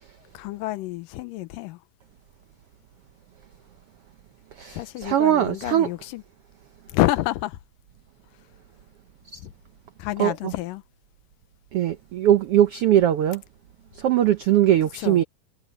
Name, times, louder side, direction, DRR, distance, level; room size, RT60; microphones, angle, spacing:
voice 1, 0.3-1.8 4.7-6.2 6.9-7.6 9.4-9.5 10.0-10.8 15.0-15.2, left 16 dB, 90° left, 2.4 m, -28 dB
voice 2, 4.6-5.9 9.3-9.4 10.2-10.5 11.7-13.4 14.0-15.2, right 11 dB, 90° right, 1.2 m, -20 dB
omnidirectional pair, 3.8 m